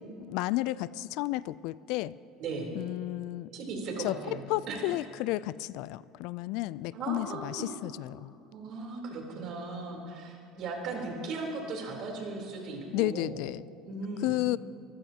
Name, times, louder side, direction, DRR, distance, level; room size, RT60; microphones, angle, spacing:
voice 1, 0.3-2.2 2.7-3.5 4.0-4.2 4.5-8.3 12.9-13.7 14.2-14.6, left 17 dB, 70° left, 19 dB, 0.3 m, -32 dB
voice 2, 2.4-2.7 3.5-5.0 6.9-7.7 8.5-13.4 13.8-14.3, right 3 dB, 55° right, 0 dB, 3.5 m, -37 dB
23.5 x 14.5 x 2.9 m, 2.8 s
supercardioid pair, 110°, 0 cm